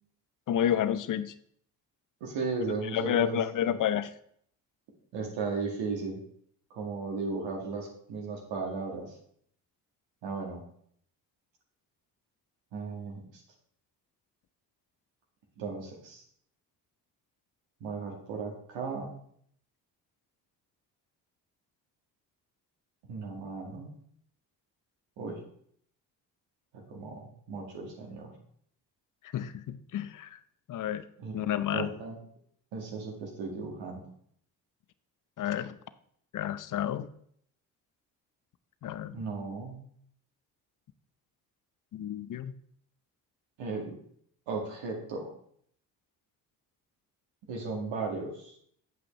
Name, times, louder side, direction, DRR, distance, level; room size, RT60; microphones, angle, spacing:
voice 1, 0.5-1.3 2.9-4.1 29.3-30.3 30.7-31.0 31.3-31.9 35.4-35.8 36.3-37.1 38.8-39.2 41.9-42.5, left 10 dB, 40° left, 14 dB, 0.7 m, -30 dB
voice 2, 2.2-3.8 5.1-6.2 6.7-9.2 10.2-10.6 12.7-13.2 15.6-16.2 17.8-19.1 23.1-23.9 25.2-25.4 26.7-28.3 31.2-32.2 32.7-34.1 39.1-39.8 43.6-44.0 44.5-45.3 47.4-48.5, right 4 dB, 60° right, 0 dB, 2.0 m, -36 dB
8.4 x 8.0 x 3.2 m, 0.66 s
figure-of-eight pair, 45°, 50 cm